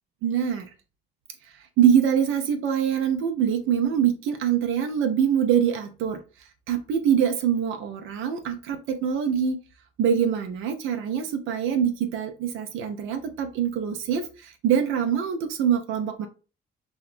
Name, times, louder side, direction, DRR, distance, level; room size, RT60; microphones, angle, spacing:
voice 1, 0.2-0.7 1.8-6.2 6.7-9.6 10.0-16.3, right 8 dB, 85° right, 5 dB, 0.5 m, -24 dB
2.8 x 2.2 x 2.4 m, 0.34 s
cardioid pair, 90°, 20 cm